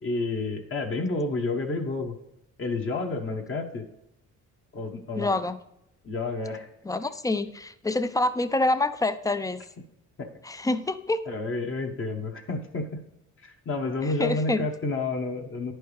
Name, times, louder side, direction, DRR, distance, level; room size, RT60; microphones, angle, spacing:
voice 1, 0.0-2.1 2.6-3.9 4.7-5.3 6.0-6.7 10.2-10.3 11.3-13.0 13.4-15.7, left 3 dB, 45° left, 1 dB, 1.0 m, -30 dB
voice 2, 5.2-5.6 6.8-9.6 10.4-11.2 14.0-14.7, left 2 dB, 10° left, 12 dB, 0.4 m, -26 dB
10.0 x 4.5 x 3.3 m, 0.82 s
cardioid pair, 90°, 30 cm